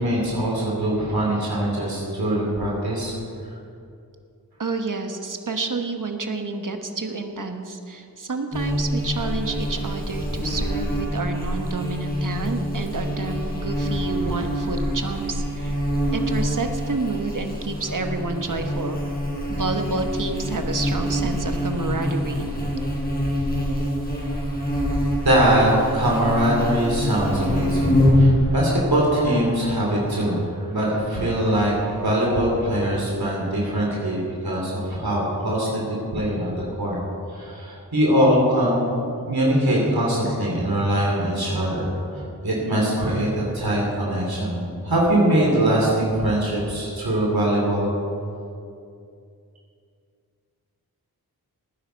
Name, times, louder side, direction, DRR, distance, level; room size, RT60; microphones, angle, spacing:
voice 1, 0.0-3.1 25.2-37.0 37.3-38.9 39.3-47.9, right 1 dB, 75° right, -4 dB, 2.9 m, -22 dB
voice 2, 4.6-15.8 16.1-19.0 19.5-22.5, right 3 dB, 55° right, 5 dB, 1.2 m, -29 dB
Buzz, 8.5-28.3, equal, 25° left, 3.8 m, -25 dB
18.0 x 9.9 x 4.6 m, 2.5 s
wide cardioid pair, 60°, 37 cm